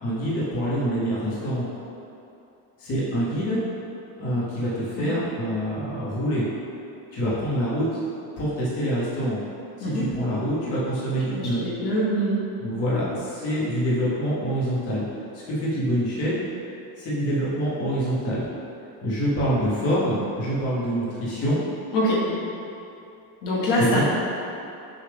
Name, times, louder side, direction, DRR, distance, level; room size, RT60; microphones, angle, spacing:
voice 1, 0.0-1.7 2.8-3.6 4.2-6.4 7.1-7.9 8.4-9.4 9.8-11.6 12.6-15.0 15.3-16.4 17.0-18.5 19.0-21.6 23.8-24.0, equal, 35° left, -8 dB, 1.0 m, -26 dB
voice 2, 11.2-12.4 21.9-22.3 23.4-24.0, equal, 80° left, -7 dB, 1.4 m, -24 dB
6.4 x 2.4 x 3.4 m, 2.7 s
cardioid pair, 165°, 40 cm